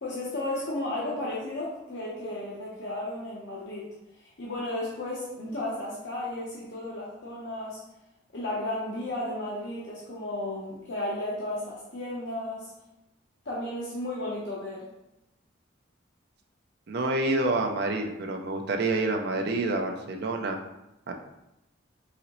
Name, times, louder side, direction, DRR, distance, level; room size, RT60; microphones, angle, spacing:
voice 1, 0.0-3.9 4.2-7.8 8.3-12.7 13.4-14.9, left 1 dB, 65° left, -5 dB, 0.8 m, -34 dB
voice 2, 16.9-20.6 21.1-21.2, right 2 dB, 55° right, 3 dB, 0.5 m, -28 dB
4.0 x 3.8 x 3.0 m, 0.90 s
head